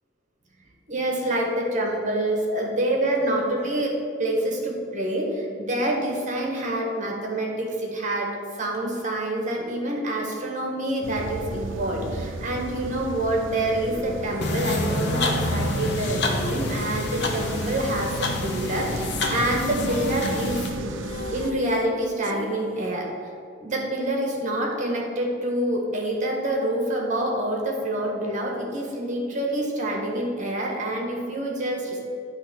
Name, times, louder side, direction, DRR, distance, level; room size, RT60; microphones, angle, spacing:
voice 1, 0.9-3.9 4.2-8.3 8.6-20.6 21.3-23.1 23.6-32.0, right 1 dB, 40° right, -1 dB, 1.4 m, -27 dB
sound 1, 11.0-21.5, right 2 dB, 75° right, 0.5 m, -35 dB
sound 2, 13.9-22.8, left 3 dB, 40° left, 0.4 m, -38 dB
sound 3, 14.4-20.7, left 1 dB, 60° left, 1.0 m, -28 dB
9.9 x 3.7 x 6.2 m, 2.4 s
head